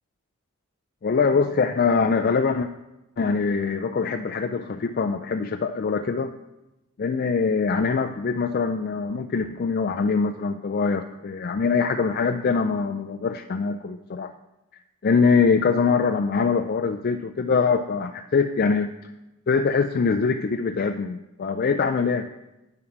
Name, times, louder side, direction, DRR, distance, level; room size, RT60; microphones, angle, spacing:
voice 1, 1.0-2.7 3.2-6.3 7.0-14.3 15.0-18.9 19.5-22.3, left 5 dB, 45° left, 6 dB, 0.4 m, -23 dB
9.2 x 7.2 x 5.8 m, 0.98 s
head